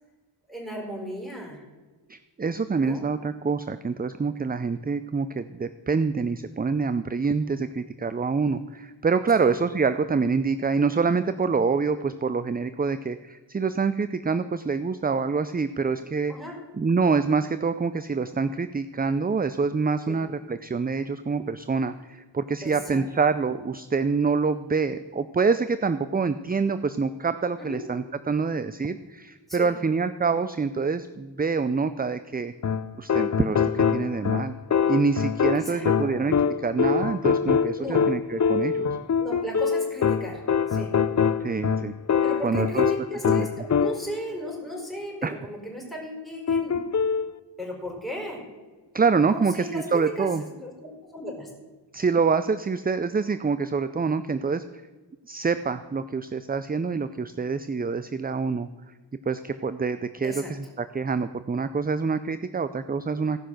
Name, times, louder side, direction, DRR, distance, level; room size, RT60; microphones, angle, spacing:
voice 1, 0.5-1.6 2.8-3.0 9.4-9.5 16.3-16.6 20.1-20.2 22.6-23.0 27.6-27.8 29.5-29.7 35.5-36.3 37.8-38.1 39.2-40.4 40.7-40.9 42.2-46.8 47.6-48.4 49.3-51.5 60.2-60.5, equal, ahead, -2 dB, 4.4 m, -35 dB
voice 2, 2.1-16.3 16.8-32.5 33.0-34.5 34.9-36.3 36.6-38.9 41.4-41.9 42.4-42.9 43.4-43.5 45.2-45.4 48.9-50.4 51.9-54.6 55.3-58.9 59.3-63.4, right 4 dB, 20° right, 12 dB, 0.4 m, -26 dB
sound 1, 32.6-44.2 46.5-47.3, left 6 dB, 40° left, 0.5 m, -24 dB
16.0 x 5.7 x 6.3 m, 1.3 s
wide cardioid pair, 55°, 45 cm